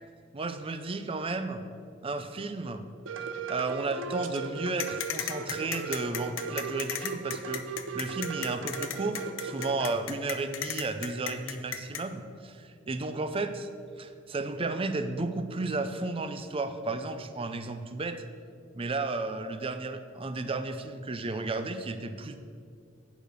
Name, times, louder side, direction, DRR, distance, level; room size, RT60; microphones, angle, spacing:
voice 1, 0.3-1.6 2.0-2.8 3.5-7.6 7.9-13.7 14.0-18.2 18.7-22.4, right 3 dB, 30° right, 9 dB, 0.5 m, -33 dB
sound 1, 3.1-10.0, right 5 dB, 80° right, 0.6 m, -37 dB
sound 2, 4.8-12.0, left 10 dB, 90° left, 0.6 m, -34 dB
8.9 x 5.1 x 6.5 m, 2.3 s
head